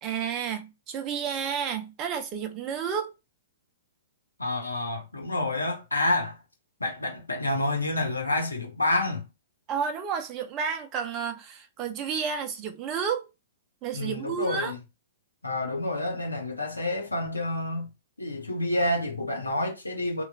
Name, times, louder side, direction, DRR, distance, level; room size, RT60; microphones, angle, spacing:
voice 1, 0.0-3.1 9.7-13.3 13.8-14.7, right 7 dB, 30° right, 0.6 m, -31 dB
voice 2, 4.4-6.4 6.8-9.2 13.9-14.8 15.4-17.9 18.2-20.2, left 2 dB, 85° left, 0.8 m, -28 dB
3.0 x 2.2 x 2.3 m
figure-of-eight pair, 110°, 0 cm